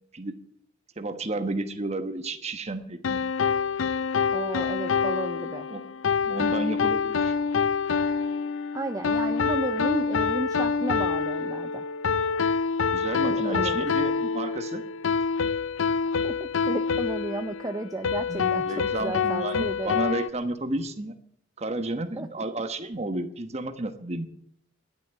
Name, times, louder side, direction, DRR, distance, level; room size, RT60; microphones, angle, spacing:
voice 1, 1.0-3.2 5.7-5.9 6.3-7.3 12.9-14.8 18.3-21.1 21.6-24.3, right 2 dB, 35° right, 8 dB, 1.2 m, -32 dB
sound 1, 3.0-20.3, left 5 dB, 80° left, 0.6 m, -26 dB
voice 2, 4.3-5.7 8.7-11.8 13.2-13.9 16.2-20.0 22.2-22.3, right 2 dB, 20° right, 8 dB, 0.5 m, -33 dB
11.5 x 9.9 x 9.7 m, 0.70 s
head